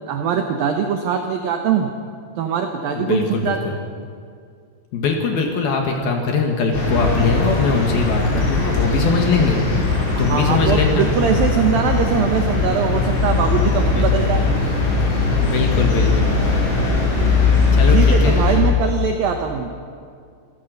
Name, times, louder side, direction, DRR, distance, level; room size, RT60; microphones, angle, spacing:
voice 1, 0.0-1.9 2.4-3.7 10.1-14.4 17.9-19.7, right 7 dB, 85° right, 4 dB, 2.0 m, -22 dB
voice 2, 2.9-3.7 4.9-11.1 13.8-14.1 15.4-16.7 17.7-18.3, left 4 dB, 60° left, 2 dB, 3.0 m, -21 dB
sound 1, 6.7-18.6, left 3 dB, 80° left, 7.8 m, -19 dB
27.0 x 15.5 x 6.6 m, 2.2 s
omnidirectional pair, 5.8 m